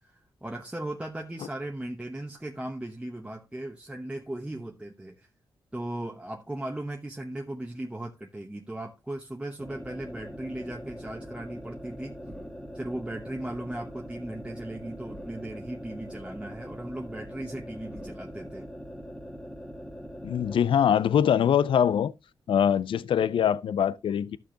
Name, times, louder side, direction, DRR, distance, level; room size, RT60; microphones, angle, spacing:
voice 1, 0.0-5.3 5.7-12.2 12.7-18.7, right 1 dB, 10° right, 0.9 m, -37 dB
sound 1, 9.6-20.6, equal, 5° left, 2.0 m, -42 dB
voice 2, 20.2-22.1 22.5-24.4, left 8 dB, 75° left, 0.4 m, -23 dB
11.5 x 6.4 x 2.8 m
cardioid pair, 65°, 9 cm